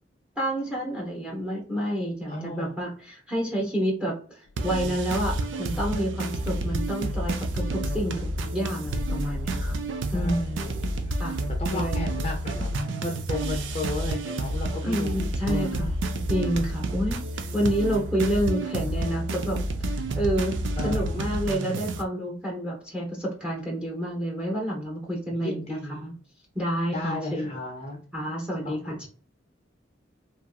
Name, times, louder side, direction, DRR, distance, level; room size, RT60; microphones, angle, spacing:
voice 1, 0.4-9.8 10.1-10.4 11.2-11.4 11.7-12.0 14.8-26.1 26.5-27.5 28.1-29.1, equal, 5° right, -1 dB, 0.7 m, -29 dB
voice 2, 2.3-2.8 10.1-11.2 11.6-15.8 20.8-21.3 25.3-26.1 26.9-28.0 28.6-28.7, left 1 dB, 35° left, 0 dB, 0.5 m, -34 dB
sound 1, 4.5-5.0 8.9-12.3 15.7-15.9, left 2 dB, 90° left, 0.3 m, -39 dB
sound 2, 4.6-22.0, right 1 dB, 85° right, 0.4 m, -29 dB
2.9 x 2.6 x 2.3 m, 0.42 s
head